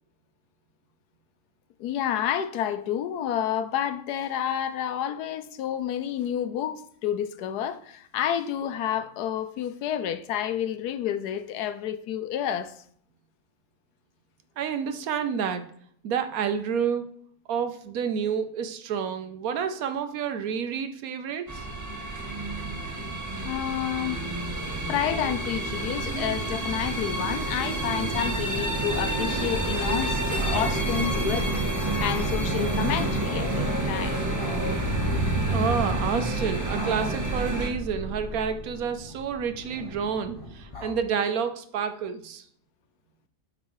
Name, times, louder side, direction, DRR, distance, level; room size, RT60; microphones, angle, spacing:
voice 1, 1.8-12.8 23.4-24.2 24.6-34.7, left 10 dB, 75° left, 1.1 m, -30 dB
voice 2, 14.6-15.6 16.0-17.0 17.5-21.7 35.5-42.4, right 7 dB, 70° right, 1.0 m, -29 dB
sound 1, 21.5-37.7, right 2 dB, 20° right, 0.5 m, -28 dB
sound 2, 30.2-40.9, left 1 dB, 25° left, 0.9 m, -37 dB
8.8 x 4.0 x 4.7 m
omnidirectional pair, 1.7 m